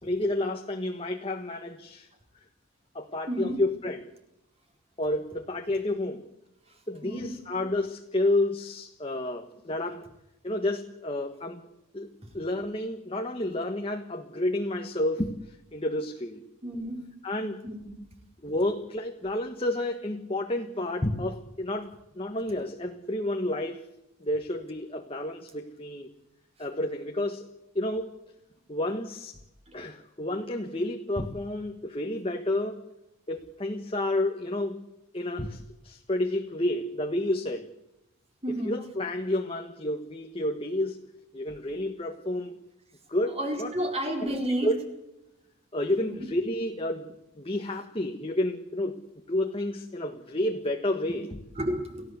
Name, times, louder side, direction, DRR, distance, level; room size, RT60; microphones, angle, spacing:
voice 1, 0.0-2.1 2.9-4.0 5.0-6.2 6.9-10.1 10.4-11.6 11.9-15.3 15.7-16.4 17.2-17.6 18.4-23.8 24.2-26.1 26.6-27.5 27.7-28.1 28.7-29.4 29.7-32.8 33.3-34.8 35.1-37.7 38.5-41.0 41.3-42.6 43.1-44.8 45.7-49.0 49.3-51.4, left 1 dB, 25° left, 3 dB, 1.5 m, -30 dB
voice 2, 3.3-3.6 7.0-7.3 16.6-17.0 17.6-17.9 38.4-38.7 43.4-44.7 46.0-46.2 51.6-52.1, right 1 dB, 30° right, 3 dB, 4.6 m, -31 dB
29.5 x 15.5 x 8.2 m, 0.92 s
head